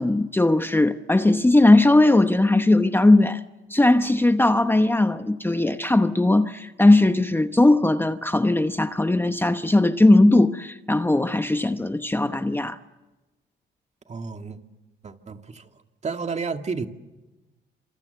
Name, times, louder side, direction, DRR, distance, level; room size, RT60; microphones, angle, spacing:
voice 1, 0.0-3.4 3.7-12.8, left 2 dB, 10° left, 1.0 m, -18 dB
voice 2, 14.1-14.6 15.0-15.7 16.0-16.9, right 5 dB, 35° right, 2.1 m, -31 dB
27.0 x 26.5 x 8.0 m
cardioid pair, 90°, 20 cm